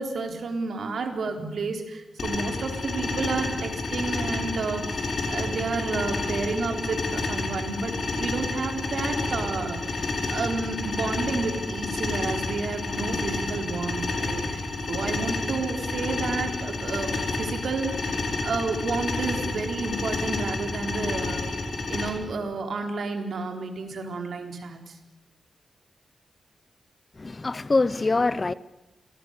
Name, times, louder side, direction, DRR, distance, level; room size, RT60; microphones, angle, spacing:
voice 1, 0.0-21.6 21.9-25.0, right 4 dB, 70° right, 4.1 m, -31 dB
sound 1, 2.2-22.1, left 3 dB, 55° left, 5.6 m, -30 dB
voice 2, 27.2-28.5, left 3 dB, 30° left, 0.7 m, -24 dB
27.0 x 19.0 x 6.7 m
wide cardioid pair, 115°, 0 cm